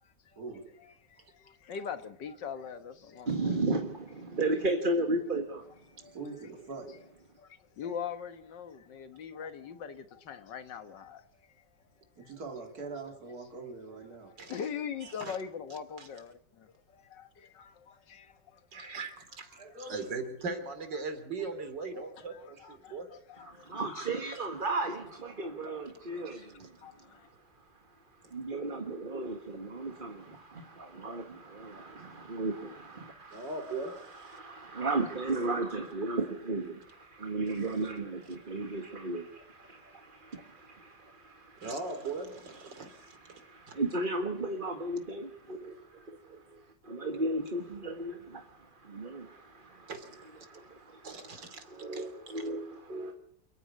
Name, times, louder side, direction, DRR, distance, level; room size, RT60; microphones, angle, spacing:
voice 1, 0.0-0.4 0.8-3.6 6.0-6.2 7.4-11.5 12.2-12.3 14.2-19.0 22.0-22.1 22.3-24.1 26.1-26.5 26.8-27.3, left 7 dB, 85° left, 2.1 m, -42 dB
voice 2, 3.3-5.6 23.5-41.7 42.7-49.9 50.4-53.1, right 2 dB, 30° right, 1.8 m, -35 dB
voice 3, 6.1-7.0 12.2-14.5 19.6-20.1, right 3 dB, 60° right, 3.3 m, -43 dB
voice 4, 15.0-15.4 16.0-16.1 18.7-23.2 26.3-26.7 33.3-34.4 37.5-37.9 41.6-43.2 43.7-43.8 49.9-50.2 51.0-51.6 51.9-52.0, right 3 dB, 90° right, 3.5 m, -40 dB
28.0 x 9.6 x 9.8 m
omnidirectional pair, 1.9 m